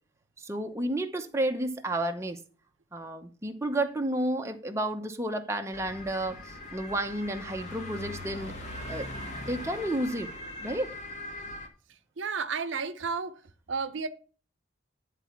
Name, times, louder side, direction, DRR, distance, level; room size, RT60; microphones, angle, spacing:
voice 1, 0.4-2.4 2.9-8.5 8.9-9.1 9.4-10.3 10.6-10.9, right 1 dB, 15° right, 0.8 m, -31 dB
sound 1, 5.7-11.7, left 1 dB, 35° left, 1.8 m, -40 dB
voice 2, 12.2-13.4 13.7-14.1, right 5 dB, 75° right, 0.7 m, -32 dB
10.5 x 4.1 x 5.7 m
head